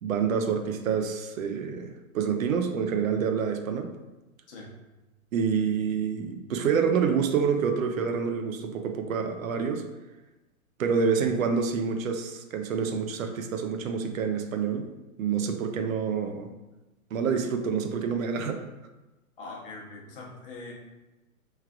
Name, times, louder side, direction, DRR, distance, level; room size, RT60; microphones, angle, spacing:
voice 1, 0.0-3.9 5.3-9.8 10.8-14.9 15.2-16.5 17.1-18.6, right 6 dB, 70° right, 6 dB, 0.6 m, -27 dB
voice 2, 19.4-20.7, left 3 dB, 40° left, -3 dB, 0.9 m, -42 dB
4.6 x 3.2 x 2.4 m, 1.0 s
hypercardioid pair, 155°, 42 cm